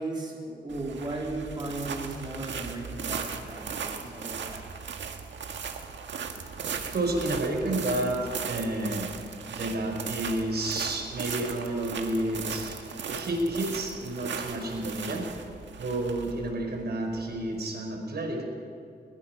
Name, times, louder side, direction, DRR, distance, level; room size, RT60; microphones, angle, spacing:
voice 1, 0.0-4.7, right 2 dB, 25° right, -2 dB, 3.5 m, -36 dB
sound 1, 0.7-17.6, right 6 dB, 90° right, 1.7 m, -37 dB
voice 2, 6.9-9.1 9.5-12.8 13.1-15.3 15.8-18.5, right 1 dB, 60° right, 2 dB, 4.7 m, -30 dB
21.5 x 21.5 x 5.8 m, 2.5 s
wide cardioid pair, 100°, 18 cm